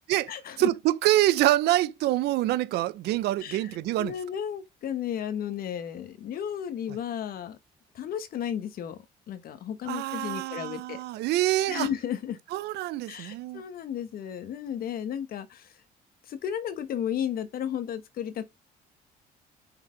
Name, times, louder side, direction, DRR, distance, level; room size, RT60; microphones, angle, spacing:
voice 1, 0.6-4.1 9.9-11.9 12.5-13.6, right 15 dB, 75° right, 0.6 m, -26 dB
voice 2, 4.0-7.6 7.9-9.0 9.3-11.0 11.7-12.4 13.1-15.7 16.3-18.5, left 9 dB, 60° left, 1.2 m, -33 dB
5.7 x 4.5 x 3.9 m
cardioid pair, 110°, 17 cm